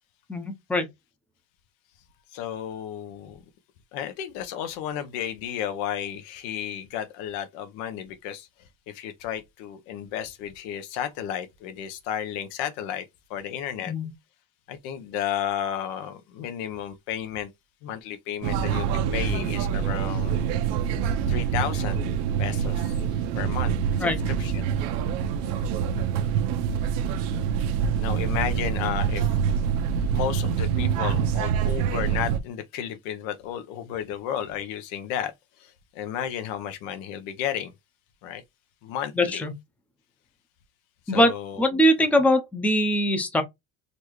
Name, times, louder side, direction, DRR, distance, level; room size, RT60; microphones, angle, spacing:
voice 1, 0.3-0.9 13.8-14.1 24.0-24.2 39.1-39.5 41.1-43.4, equal, 5° left, 0.6 m, -22 dB
voice 2, 2.3-3.4 3.9-8.5 8.9-13.9 14.7-17.5 17.8-20.5 21.3-22.1 22.4-22.9 23.3-24.7 28.0-29.3 30.1-35.3 35.6-37.7 38.2-38.4 38.8-39.4 41.1-41.8, left 9 dB, 80° left, 1.0 m, -33 dB
sound 1, 18.4-32.4, right 7 dB, 75° right, 0.9 m, -26 dB
4.2 x 3.3 x 3.1 m
cardioid pair, 160°, 36 cm